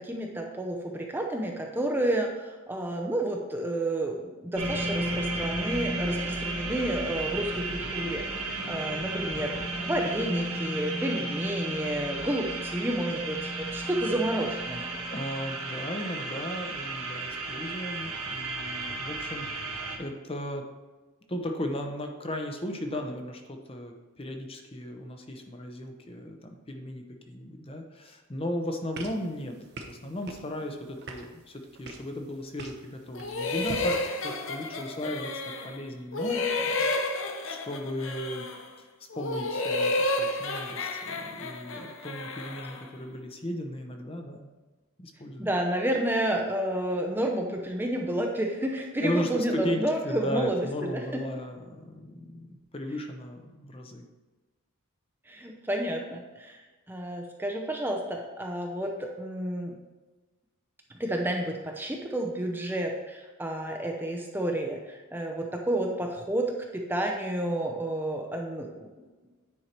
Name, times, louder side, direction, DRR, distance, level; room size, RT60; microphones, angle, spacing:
voice 1, 0.0-9.6 9.8-15.0 45.4-51.2 55.3-56.6 56.9-59.8 61.0-69.1, right 1 dB, 10° right, 2 dB, 0.6 m, -30 dB
sound 1, 4.6-20.0, right 2 dB, 75° right, 1.6 m, -33 dB
voice 2, 15.1-20.6 21.3-38.5 38.8-38.9 39.1-44.5 45.0-45.5 49.0-54.0, equal, 25° left, 4 dB, 0.8 m, -36 dB
sound 2, 28.9-34.0, right 2 dB, 50° right, 0.9 m, -45 dB
sound 3, 33.1-35.8 36.1-38.7 39.1-42.9, left 2 dB, 65° left, 0.8 m, -31 dB
9.6 x 4.6 x 4.4 m, 1.2 s
head